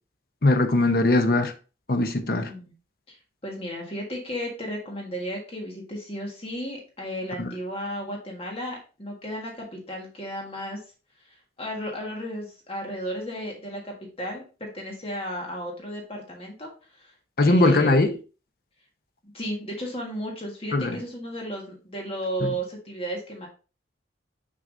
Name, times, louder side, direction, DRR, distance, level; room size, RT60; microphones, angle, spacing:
voice 1, 0.4-1.5 1.9-2.5 7.4-7.5 17.4-18.2 20.7-21.0, left 2 dB, 50° left, 0.8 m, -20 dB
voice 2, 2.4-2.7 3.1-3.2 3.4-10.8 11.2-17.1 17.5-18.0 19.3-23.5, equal, 30° left, 1.6 m, -34 dB
6.2 x 5.7 x 2.6 m
head